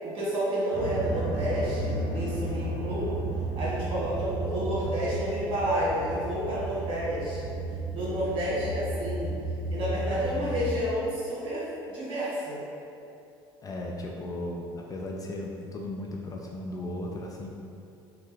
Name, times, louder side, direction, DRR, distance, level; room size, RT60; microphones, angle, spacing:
voice 1, 0.0-3.2 3.5-7.5 7.9-9.3 9.7-12.6, equal, 45° right, -8 dB, 1.5 m, -30 dB
sound 1, 0.7-10.7, right 1 dB, 10° left, 0.8 m, -33 dB
voice 2, 10.1-10.6 13.6-17.5, left 1 dB, 30° left, -1 dB, 0.3 m, -36 dB
3.2 x 2.0 x 3.1 m, 2.6 s
hypercardioid pair, 75°, 12 cm